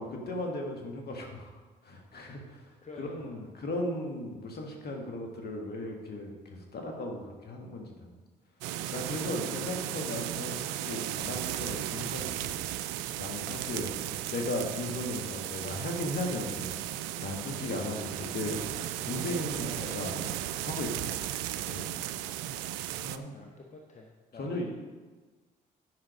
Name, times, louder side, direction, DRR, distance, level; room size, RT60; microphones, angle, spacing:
voice 1, 0.0-1.5 1.8-2.6 3.0-8.1 8.9-12.6 13.2-13.9 14.3-16.7 17.2-18.6 19.0-20.2 20.6-21.3 21.6-22.0 23.0-23.4 24.4-24.7, left 1 dB, 55° left, 1 dB, 2.1 m, -36 dB
voice 2, 2.8-3.4 19.6-20.4 22.1-22.3 23.3-24.7, left 3 dB, 40° left, 1 dB, 1.3 m, -47 dB
sound 1, 8.6-23.2, right 13 dB, 85° right, 0.4 m, -35 dB
10.5 x 5.8 x 5.2 m, 1.3 s
hypercardioid pair, 50°, 19 cm